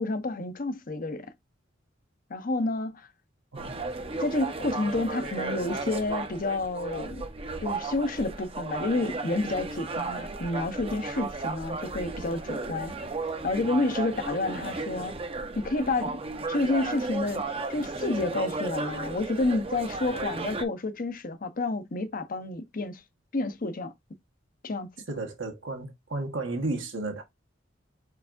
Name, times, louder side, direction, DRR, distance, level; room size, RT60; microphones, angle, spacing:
voice 1, 0.0-1.3 2.3-3.1 4.2-7.2 7.6-12.9 13.4-15.1 15.6-16.2 16.5-17.4 17.7-23.0 23.3-23.9 24.6-24.9, left 2 dB, 45° left, 0.7 m, -29 dB
sound 1, 3.5-20.6, right 3 dB, 30° right, 0.7 m, -34 dB
voice 2, 3.5-3.9 25.1-27.2, right 2 dB, 75° right, 1.4 m, -33 dB
4.7 x 4.6 x 2.5 m
head